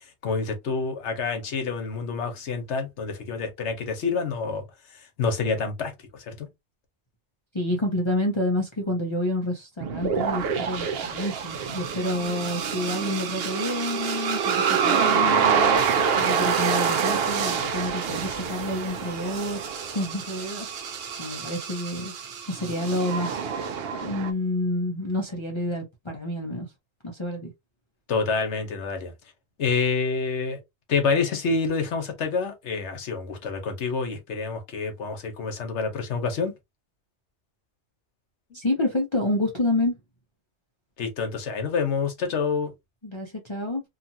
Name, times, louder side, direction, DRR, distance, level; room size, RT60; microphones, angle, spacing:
voice 1, 0.2-4.6 4.9-6.5 28.1-29.1 29.6-30.6 30.9-36.5 41.0-42.7, left 4 dB, 80° left, 1.2 m, -27 dB
voice 2, 7.5-15.8 16.1-23.5 24.0-26.7 27.0-27.5 38.5-40.0 43.0-43.8, left 1 dB, 30° left, 0.7 m, -29 dB
sound 1, 9.8-24.3, right 6 dB, 65° right, 0.8 m, -26 dB
2.8 x 2.4 x 2.7 m
omnidirectional pair, 1.2 m